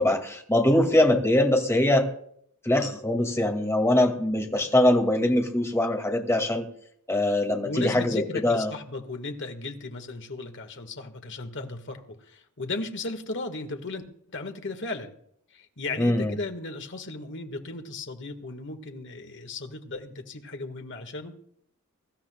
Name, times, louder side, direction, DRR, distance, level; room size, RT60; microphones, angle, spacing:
voice 1, 0.0-2.1 2.6-6.7 7.1-8.7 16.0-16.4, left 1 dB, 10° left, 3 dB, 2.1 m, -22 dB
voice 2, 7.6-15.1 15.5-21.4, left 3 dB, 55° left, 6 dB, 1.7 m, -36 dB
23.5 x 13.0 x 2.3 m, 0.65 s
head